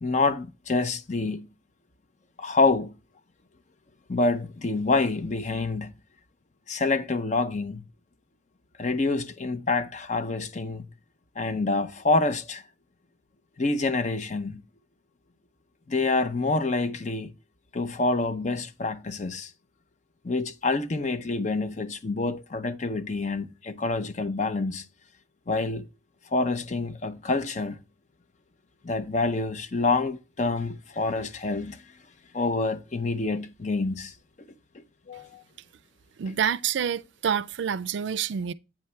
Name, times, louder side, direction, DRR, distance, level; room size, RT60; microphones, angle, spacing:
voice 1, 0.0-1.5 2.4-3.0 4.1-5.9 6.7-7.8 8.8-10.9 11.4-12.6 13.6-14.6 15.9-17.3 17.7-19.5 20.2-24.8 25.5-25.9 26.3-27.8 28.8-31.8 32.3-34.1 35.1-35.4, left 3 dB, 35° left, 0.5 m, -27 dB
voice 2, 36.2-38.5, right 8 dB, 65° right, 0.4 m, -27 dB
8.7 x 3.2 x 5.6 m
head